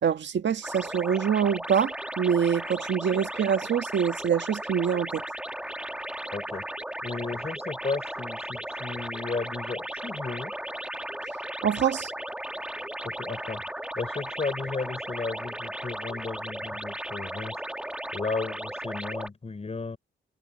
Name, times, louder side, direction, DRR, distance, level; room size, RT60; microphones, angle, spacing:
voice 1, 0.0-5.2 11.6-12.1, right 8 dB, 65° right, 1.6 m, -25 dB
sound 1, 0.6-19.3, right 1 dB, 5° right, 2.3 m, -36 dB
voice 2, 6.3-6.7 7.0-10.5 13.0-13.6 14.0-17.6 18.1-20.0, left 4 dB, 30° left, 5.3 m, -34 dB
wide cardioid pair, 120°, 20 cm